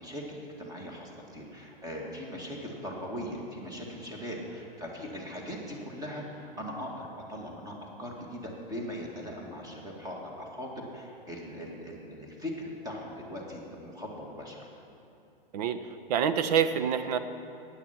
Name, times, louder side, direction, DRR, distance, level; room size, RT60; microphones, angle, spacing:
voice 1, 0.0-14.7, equal, 10° right, -1 dB, 2.1 m, -40 dB
voice 2, 16.1-17.2, right 8 dB, 45° right, 10 dB, 0.8 m, -26 dB
15.5 x 9.6 x 5.9 m, 2.6 s
figure-of-eight pair, 110°, 29 cm